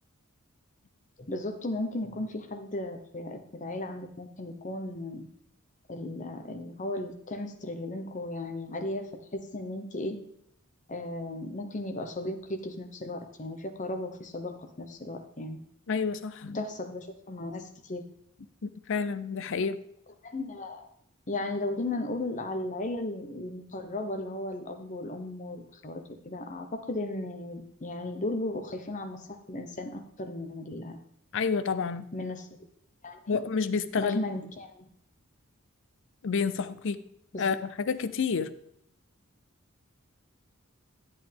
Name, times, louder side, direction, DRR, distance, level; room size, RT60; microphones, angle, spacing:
voice 1, 1.2-5.3 5.9-9.1 9.3-10.2 10.9-15.6 16.5-18.0 20.2-20.9 21.3-31.0 32.1-32.6 33.0-33.4 34.0-34.9 37.3-37.5, left 2 dB, 35° left, 6 dB, 1.0 m, -35 dB
voice 2, 15.9-16.6 18.6-19.8 31.3-32.1 33.3-34.2 36.2-37.0 37.4-38.5, left 5 dB, 60° left, 13 dB, 0.5 m, -29 dB
10.5 x 8.2 x 3.4 m, 0.72 s
head